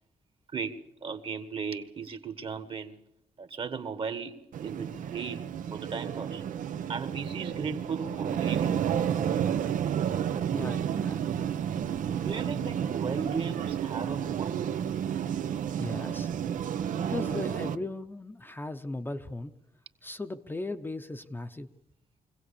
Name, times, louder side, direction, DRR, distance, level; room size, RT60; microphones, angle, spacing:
voice 1, 0.5-3.0 3.4-5.4 5.7-6.4 6.9-9.0 12.2-14.8, right 5 dB, 40° right, 10 dB, 1.5 m, -36 dB
sound 1, 4.5-17.8, right 9 dB, 85° right, 0.9 m, -31 dB
voice 2, 10.5-11.4 15.7-16.3 16.9-19.5 20.0-21.7, left 2 dB, 15° left, 6 dB, 0.8 m, -37 dB
24.5 x 17.0 x 8.5 m, 0.81 s
wide cardioid pair, 155°, 13 cm